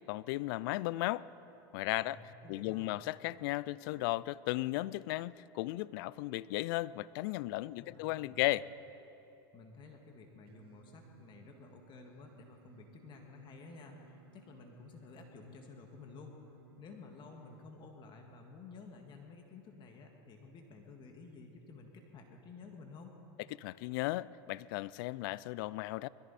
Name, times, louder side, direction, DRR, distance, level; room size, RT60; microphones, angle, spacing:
voice 1, 0.1-1.3 1.7-2.2 2.5-8.7 23.6-26.1, left 18 dB, 70° left, 20 dB, 0.4 m, -35 dB
voice 2, 2.0-3.0 7.7-8.5 9.5-16.4 16.8-23.2, left 4 dB, 40° left, 3 dB, 1.8 m, -53 dB
Singing, 10.5-17.7, right 7 dB, 90° right, 1.4 m, -63 dB
21.5 x 14.5 x 4.2 m, 3.0 s
supercardioid pair, 105°, 12 cm